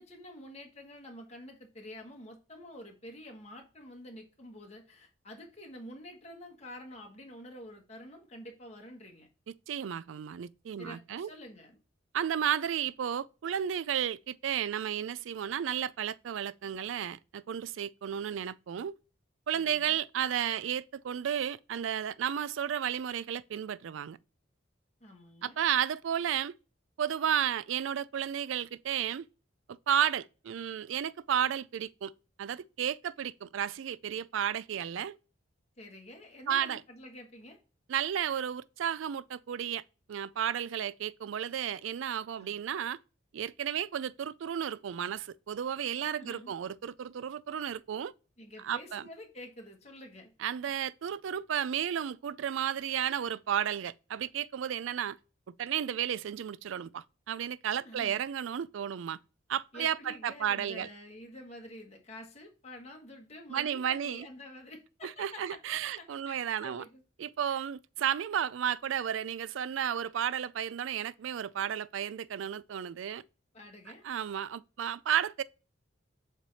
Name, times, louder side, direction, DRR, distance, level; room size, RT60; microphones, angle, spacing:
voice 1, 0.0-9.3 10.8-11.8 19.5-20.0 25.0-25.6 35.8-37.6 42.4-42.6 46.0-46.5 48.4-50.3 57.8-58.2 59.7-67.0 67.4-67.6 73.5-74.0, left 1 dB, 35° left, 1.4 m, -48 dB
voice 2, 9.7-11.3 12.1-18.9 19.5-24.2 25.4-26.5 27.0-29.3 29.7-32.1 32.4-35.2 36.5-36.8 37.9-39.8 40.1-43.0 43.3-48.1 48.6-49.0 50.4-55.2 55.6-59.2 59.5-60.9 63.5-64.3 65.0-66.8 67.2-73.2 74.0-75.4, right 9 dB, 75° right, 0.3 m, -33 dB
7.4 x 3.3 x 4.0 m
head